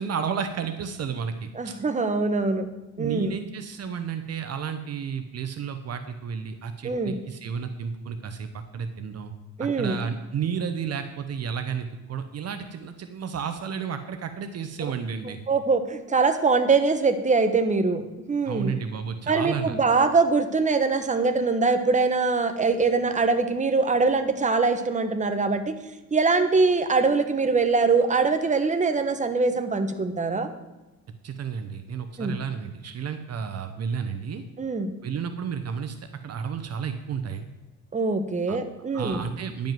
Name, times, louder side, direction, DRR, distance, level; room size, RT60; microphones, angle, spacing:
voice 1, 0.0-1.7 3.0-9.3 9.6-15.4 18.4-19.8 31.2-34.4 35.0-36.0 36.2-37.4 38.5-38.6 38.9-39.7, right 7 dB, 55° right, 9 dB, 0.8 m, -32 dB
voice 2, 1.5-2.6 3.0-3.4 6.8-7.2 9.6-10.0 15.2-18.8 19.3-25.7 26.1-30.5 32.2-32.4 34.6-34.9 37.9-39.3, right 4 dB, 25° right, 8 dB, 1.1 m, -23 dB
10.5 x 5.4 x 7.6 m, 1.1 s
cardioid pair, 90°, 30 cm